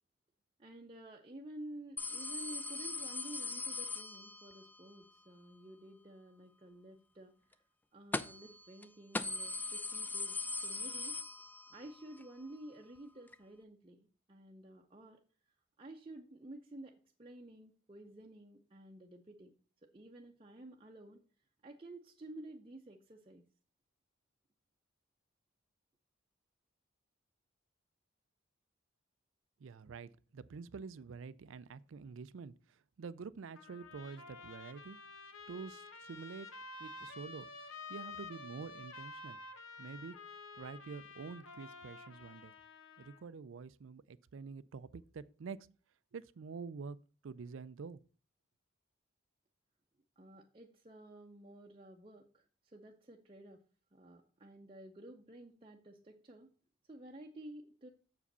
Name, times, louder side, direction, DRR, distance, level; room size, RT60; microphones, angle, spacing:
voice 1, 0.6-7.6 7.9-11.2 11.7-15.2 15.8-19.5 19.8-21.2 21.6-23.4 50.2-53.6 53.9-56.5 56.9-57.9, right 1 dB, 25° right, 0.6 m, -52 dB
sound 1, 2.0-4.7 8.1-8.5 8.8-8.9 9.1-11.9 12.2-12.3 13.3-13.4, left 3 dB, 10° left, 0.3 m, -40 dB
voice 2, 29.6-35.0 35.5-36.5 36.8-37.5 37.9-39.4 39.8-40.2 40.6-42.5 43.0-45.7 46.1-47.0 47.2-48.0, right 5 dB, 75° right, 0.4 m, -47 dB
Trumpet, 33.5-43.2, left 3 dB, 80° left, 1.1 m, -50 dB
7.0 x 5.0 x 6.7 m
head